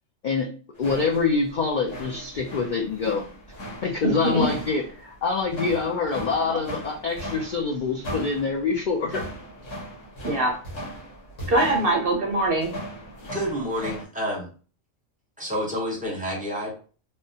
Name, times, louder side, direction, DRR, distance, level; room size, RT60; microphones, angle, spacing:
sound 1, 0.8-14.0, equal, 80° left, 1.4 m, -38 dB
voice 1, 0.8-3.2 3.8-9.2, left 4 dB, 65° left, 0 dB, 0.4 m, -25 dB
voice 2, 4.0-4.5 10.2-10.6 11.5-12.8, right 1 dB, 60° right, 1 dB, 0.6 m, -23 dB
voice 3, 13.3-14.5 15.4-16.7, equal, 10° right, -2 dB, 0.7 m, -29 dB
3.5 x 2.1 x 2.7 m, 0.38 s
omnidirectional pair, 1.3 m